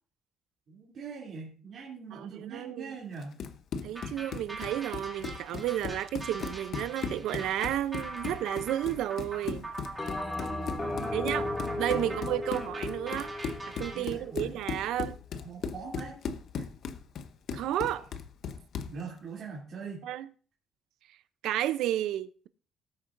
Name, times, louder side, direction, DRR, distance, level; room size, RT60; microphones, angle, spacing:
voice 1, 0.7-3.4 10.4-12.3 13.9-14.6 15.4-16.2 18.8-20.1, right 5 dB, 40° right, 2.9 m, -43 dB
voice 2, 2.1-2.9 3.8-9.7 11.1-11.5 11.8-13.3 13.7-15.2 17.5-18.1 20.0-20.3 21.4-22.5, right 12 dB, 85° right, 0.6 m, -32 dB
Run, 3.2-19.0, left 6 dB, 50° left, 0.9 m, -38 dB
sound 1, 3.9-14.0, right 2 dB, 10° right, 2.4 m, -42 dB
Bell, 10.0-14.6, left 2 dB, 15° left, 1.9 m, -36 dB
19.0 x 8.9 x 2.6 m
cardioid pair, 175°, 0 cm